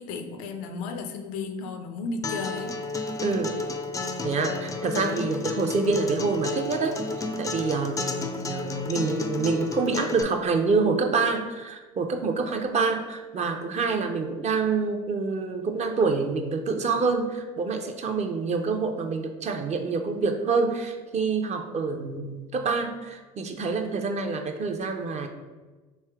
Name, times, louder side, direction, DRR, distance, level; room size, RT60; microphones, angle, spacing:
voice 1, 0.0-2.8, left 4 dB, 75° left, 7 dB, 0.5 m, -34 dB
Acoustic guitar, 2.2-10.2, left 3 dB, 15° left, 0.4 m, -32 dB
voice 2, 3.2-3.5 4.2-25.3, right 4 dB, 35° right, 5 dB, 0.5 m, -27 dB
3.3 x 2.8 x 3.4 m, 1.3 s
hypercardioid pair, 70°, 20 cm